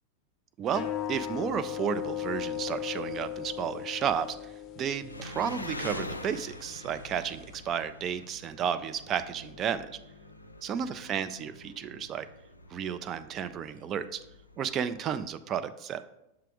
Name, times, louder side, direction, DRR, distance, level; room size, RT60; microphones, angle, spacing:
voice 1, 0.6-9.9 10.6-12.3 12.7-14.2 14.6-16.0, right 8 dB, 30° right, 11 dB, 0.4 m, -32 dB
sound 1, 0.7-7.6, left 10 dB, 35° left, 0.7 m, -38 dB
Engine, 5.1-15.3, left 2 dB, 85° left, 0.4 m, -45 dB
6.9 x 3.3 x 4.8 m, 0.87 s
figure-of-eight pair, 90°, 0 cm